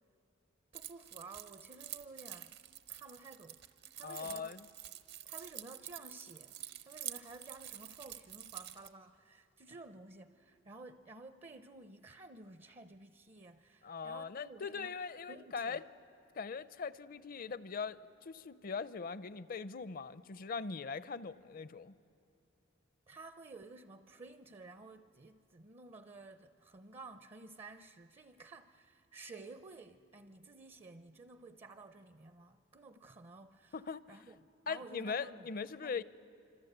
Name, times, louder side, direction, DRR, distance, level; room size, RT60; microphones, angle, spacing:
voice 1, 0.7-2.6 2.9-3.7 3.9-4.6 5.2-15.0 15.3-15.8 23.1-33.8 34.1-34.4 34.7-36.0, right 3 dB, 35° right, 0.5 m, -53 dB
Keys jangling, 0.7-8.9, right 12 dB, 60° right, 0.9 m, -48 dB
voice 2, 4.0-4.7 13.8-15.8 16.3-21.9 33.7-34.2 34.7-36.0, left 5 dB, 50° left, 0.6 m, -41 dB
26.0 x 26.0 x 8.0 m
head